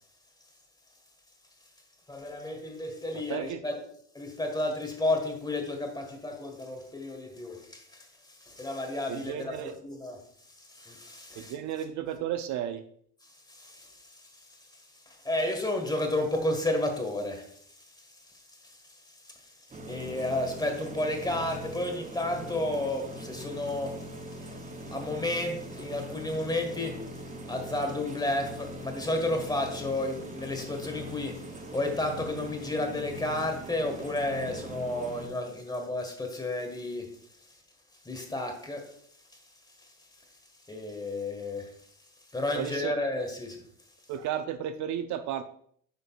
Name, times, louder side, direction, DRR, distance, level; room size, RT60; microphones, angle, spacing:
voice 1, 2.1-3.8 4.1-8.1 8.4-10.2 10.7-11.5 13.5-14.0 15.1-17.5 19.2-19.5 19.9-24.0 24.3-27.2 27.5-37.1 38.0-38.9 40.7-41.7 42.3-43.6, left 1 dB, 10° left, 1.7 m, -32 dB
voice 2, 3.1-3.6 9.1-9.7 11.4-12.8 42.5-42.9 44.1-45.4, right 10 dB, 55° right, 0.6 m, -33 dB
sound 1, 19.7-35.3, equal, 20° right, 0.9 m, -41 dB
9.9 x 5.2 x 2.4 m
supercardioid pair, 85°, 35 cm